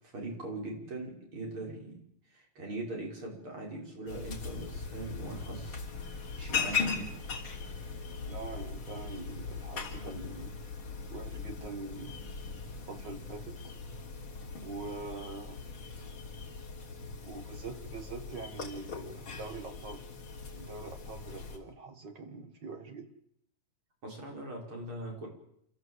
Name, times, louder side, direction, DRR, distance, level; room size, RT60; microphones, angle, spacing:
voice 1, 0.0-2.0 2.3-5.8 6.1-7.1 24.0-25.3, right 2 dB, 80° right, -1 dB, 6.4 m, -41 dB
sound 1, 4.1-21.6, left 5 dB, 90° left, 4.3 m, -39 dB
voice 2, 8.2-10.5 11.1-12.2 12.9-13.7 14.6-15.6 17.2-20.1 20.5-23.1, right 3 dB, 60° right, 5 dB, 2.2 m, -44 dB
28.0 x 14.0 x 8.0 m, 0.73 s
omnidirectional pair, 2.3 m